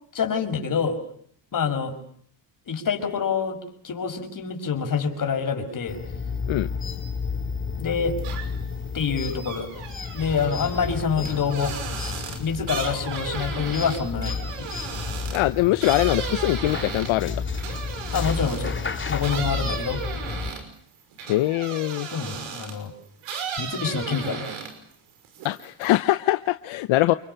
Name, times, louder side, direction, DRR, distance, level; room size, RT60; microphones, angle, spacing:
voice 1, 0.1-1.0 1.5-1.9 2.7-3.6 3.8-6.0 7.8-8.2 8.9-11.7 12.4-14.7 18.1-18.8 19.1-20.2 22.1-22.9 23.6-24.5, left 6 dB, 40° left, 5 dB, 6.0 m, -26 dB
sound 1, 5.9-20.5, left 5 dB, 25° left, 5.7 m, -31 dB
sound 2, 8.2-8.7 9.1-18.8 19.2-22.8 23.2-24.9 25.2-25.9, right 6 dB, 85° right, 5.8 m, -35 dB
voice 2, 15.3-17.4 21.3-22.1 25.4-27.1, left 17 dB, 75° left, 11 dB, 1.0 m, -22 dB
29.0 x 24.0 x 6.9 m, 0.62 s
cardioid pair, 90°, 48 cm